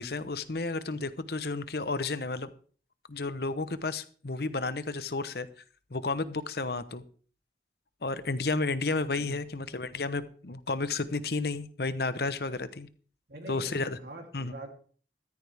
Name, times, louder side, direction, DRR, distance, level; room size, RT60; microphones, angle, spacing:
voice 1, 0.0-2.5 3.1-5.5 5.9-7.0 8.0-12.9 13.5-14.0 14.3-14.5, left 3 dB, 60° left, 14 dB, 0.9 m, -32 dB
voice 2, 13.3-14.7, right 1 dB, 60° right, 2 dB, 3.1 m, -44 dB
14.5 x 13.5 x 3.5 m, 0.43 s
head